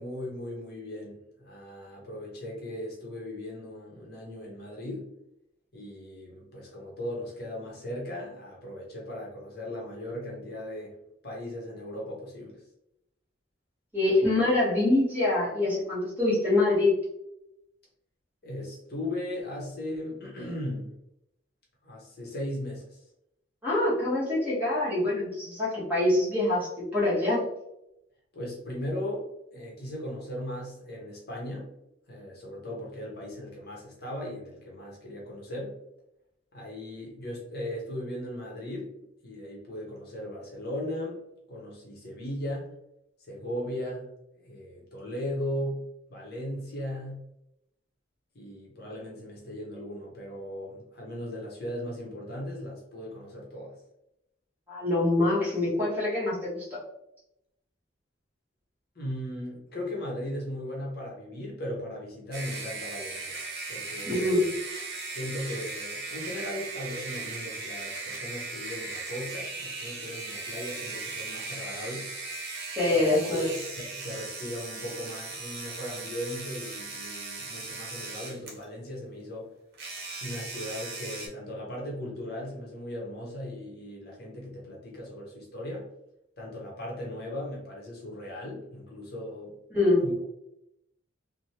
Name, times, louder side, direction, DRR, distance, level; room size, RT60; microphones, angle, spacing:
voice 1, 0.0-5.1 5.7-11.0 11.2-12.6 18.4-20.9 21.8-23.0 28.3-29.3 29.5-31.7 32.1-35.8 36.5-38.9 39.2-41.2 41.5-42.7 43.2-44.1 44.4-45.8 46.1-47.2 48.3-53.8 58.9-63.4 63.7-64.5 65.1-72.1 72.9-73.1 73.5-79.5 80.2-85.9 86.4-89.6 90.0-90.2, left 1 dB, 50° left, -3 dB, 0.8 m, -37 dB
voice 2, 13.9-16.9 23.6-27.4 54.7-56.8 64.1-64.4 72.8-73.6 89.7-90.0, left 2 dB, 10° right, -8 dB, 1.1 m, -25 dB
sound 1, 62.3-78.6 79.7-81.3, right 3 dB, 50° right, 0.8 m, -38 dB
3.1 x 2.1 x 2.7 m, 0.83 s
head